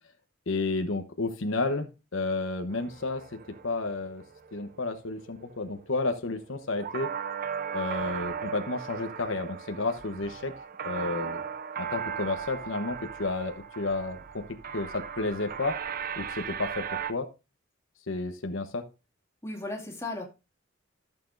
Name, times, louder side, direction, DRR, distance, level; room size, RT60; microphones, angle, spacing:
voice 1, 0.5-3.2 3.6-4.2 4.5-7.1 7.7-10.5 10.8-11.4 11.8-14.4 14.7-15.7 16.2-16.8 17.1-17.3 18.1-18.8, left 3 dB, 75° left, 7 dB, 1.0 m, -31 dB
sound 1, 2.7-17.1, right 7 dB, 45° right, 0.7 m, -37 dB
voice 2, 19.4-20.2, left 2 dB, 15° left, 0 dB, 2.4 m, -35 dB
14.5 x 6.8 x 2.6 m, 0.28 s
head